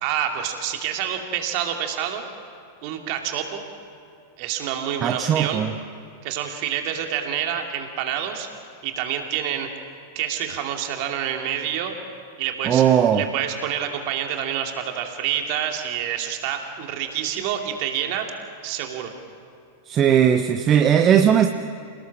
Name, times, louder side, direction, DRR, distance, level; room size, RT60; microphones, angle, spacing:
voice 1, 0.0-2.3 2.8-3.6 4.4-5.6 6.2-8.5 8.8-9.7 10.1-11.9 12.4-12.9 13.1-18.3 18.6-19.1, right 9 dB, 45° right, 3 dB, 2.6 m, -27 dB
voice 2, 5.0-5.8 12.6-13.3 19.9-21.5, right 9 dB, 30° right, 8 dB, 0.8 m, -18 dB
28.0 x 18.0 x 6.2 m, 2.5 s
figure-of-eight pair, 90°, 0 cm